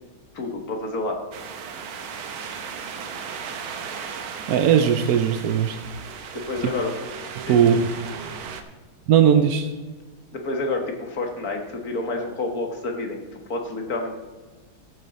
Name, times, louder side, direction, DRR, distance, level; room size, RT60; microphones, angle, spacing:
voice 1, 0.3-1.2 6.3-7.1 7.5-7.7 10.3-14.1, left 2 dB, 50° left, 3 dB, 1.9 m, -29 dB
sound 1, 1.3-8.6, right 6 dB, 85° right, 1.8 m, -36 dB
voice 2, 4.5-5.8 7.5-7.8 9.1-9.7, right 8 dB, 70° right, 7 dB, 0.9 m, -18 dB
14.0 x 8.5 x 4.1 m, 1.3 s
omnidirectional pair, 2.2 m